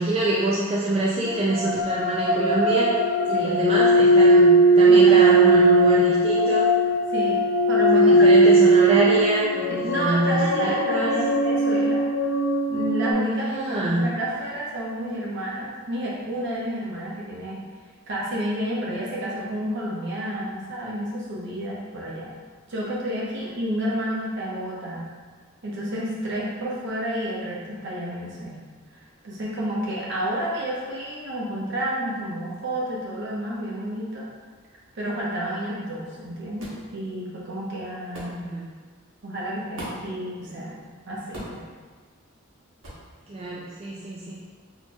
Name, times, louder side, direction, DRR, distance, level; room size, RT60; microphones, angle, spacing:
voice 1, 0.0-3.0 3.3-6.7 7.9-11.1 13.4-14.1 38.4-38.6 43.3-44.4, right 2 dB, 30° right, -6 dB, 0.3 m, -25 dB
sound 1, 1.3-13.1, right 1 dB, 70° left, 0.4 m, -18 dB
voice 2, 3.3-3.6 4.9-5.7 7.1-7.4 7.7-8.3 9.7-12.0 12.7-17.6 18.1-22.3 22.7-25.0 25.6-28.6 28.9-34.2 34.9-38.5 39.2-40.8 41.1-41.6, right 1 dB, 55° right, -5 dB, 0.9 m, -30 dB
sound 2, 36.6-36.9 38.1-38.4 39.8-40.1 41.3-41.7 42.8-43.1, right 1 dB, 75° right, 1.1 m, -37 dB
4.3 x 2.9 x 2.3 m, 1.5 s
head